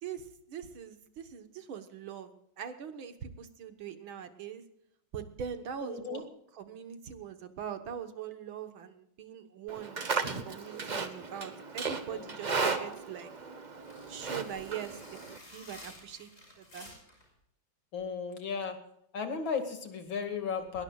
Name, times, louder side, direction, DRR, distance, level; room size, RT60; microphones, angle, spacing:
voice 1, 0.0-4.6 5.1-6.3 6.5-13.3 14.1-15.0 15.5-16.3 16.6-16.9, right 8 dB, 75° right, 9 dB, 2.1 m, -42 dB
voice 2, 5.8-6.3 12.1-12.3 17.9-18.8 19.1-20.8, left 5 dB, 70° left, 5 dB, 2.8 m, -35 dB
Livestock farm animals working animals, 9.7-15.4, right 4 dB, 35° right, 0.8 m, -35 dB
sound 1, 12.8-17.3, left 1 dB, 30° left, 6.0 m, -53 dB
20.5 x 20.0 x 2.4 m, 0.73 s
omnidirectional pair, 2.2 m